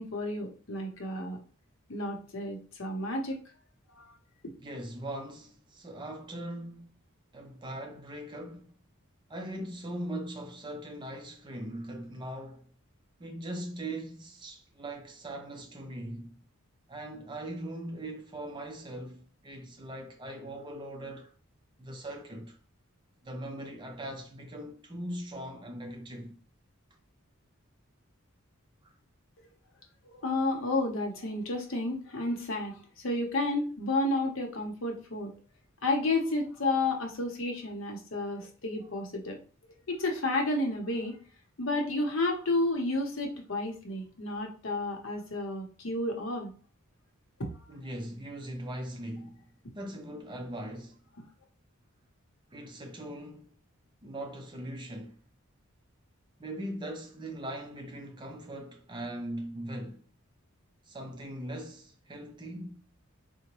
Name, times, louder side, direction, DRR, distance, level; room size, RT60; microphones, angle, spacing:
voice 1, 0.0-1.4 1.9-3.4 3.9-4.1 30.0-35.3 35.8-39.4 39.9-41.2 41.6-46.5, left 2 dB, 65° left, 0.8 m, -31 dB
voice 2, 4.6-6.9 7.3-8.7 9.3-12.7 13.2-16.4 16.9-21.3 21.8-22.6 23.2-26.4 47.7-49.4 49.7-51.0 52.5-53.5 54.0-55.2 56.4-60.0 60.9-62.8, right 1 dB, 20° right, 0.5 m, -40 dB
3.8 x 2.1 x 3.0 m
head